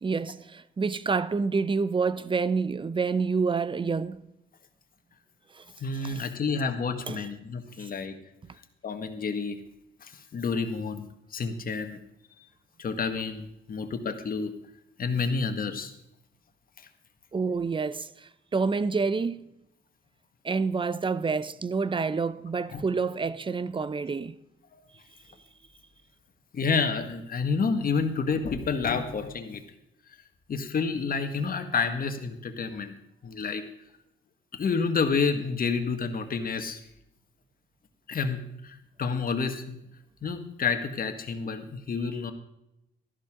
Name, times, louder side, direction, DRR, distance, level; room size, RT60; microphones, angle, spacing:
voice 1, 0.0-4.2 5.6-5.7 6.0-6.2 7.1-7.2 17.3-18.1 18.5-19.5 20.4-24.4, right 4 dB, 25° right, 0.6 m, -28 dB
voice 2, 5.8-8.2 8.8-9.6 10.0-12.0 12.8-14.5 15.0-15.9 22.7-22.8 24.7-24.8 26.5-29.6 30.5-32.9 33.2-33.6 34.5-36.8 38.1-39.8 40.2-42.3, left 5 dB, 45° left, 1.7 m, -29 dB
13.5 x 12.0 x 3.8 m
cardioid pair, 90°, 20 cm